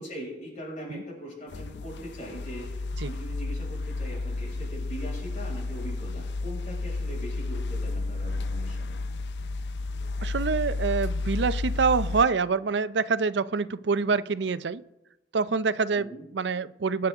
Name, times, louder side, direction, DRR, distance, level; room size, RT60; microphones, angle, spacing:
voice 1, 0.0-9.0 16.0-16.2, equal, 45° left, -3 dB, 5.8 m, -41 dB
sound 1, 1.5-12.2, left 3 dB, 65° left, 0.5 m, -32 dB
voice 2, 10.2-14.8 15.3-17.1, right 4 dB, 70° right, 15 dB, 0.5 m, -26 dB
25.0 x 9.4 x 3.6 m, 0.93 s
head